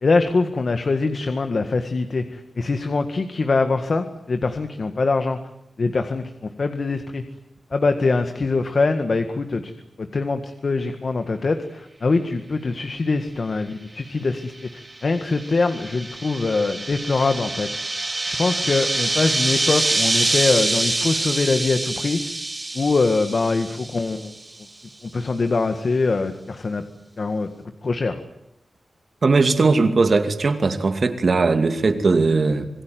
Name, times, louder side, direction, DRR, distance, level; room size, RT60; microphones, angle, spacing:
voice 1, 0.0-5.4 5.8-7.3 7.7-14.7 15.0-17.7 18.3-22.2 22.7-24.3 25.0-26.8 27.2-27.5 27.8-28.2, left 3 dB, 50° left, 7 dB, 1.9 m, -23 dB
sound 1, 14.6-24.4, right 2 dB, 25° right, 2.9 m, -26 dB
voice 2, 29.2-32.7, right 3 dB, 50° right, 8 dB, 2.5 m, -19 dB
27.0 x 21.5 x 9.4 m, 0.82 s
wide cardioid pair, 145°, 0 cm